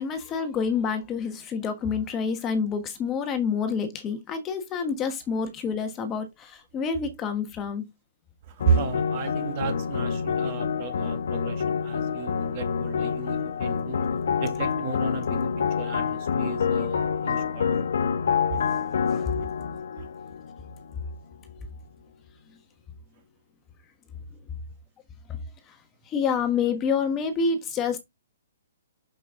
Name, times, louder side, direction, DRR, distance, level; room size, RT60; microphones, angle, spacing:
voice 1, 0.0-7.9 19.1-19.3 25.3-25.4 25.7-25.8 26.1-28.0, left 5 dB, 20° left, 1.3 m, -28 dB
voice 2, 8.4-14.0 14.4-17.8 18.5-18.6 20.0-20.1, right 6 dB, 40° right, 2.0 m, -33 dB
sound 1, 8.6-21.1, left 6 dB, 70° left, 1.2 m, -27 dB
6.7 x 6.1 x 3.7 m
hypercardioid pair, 155°, 0 cm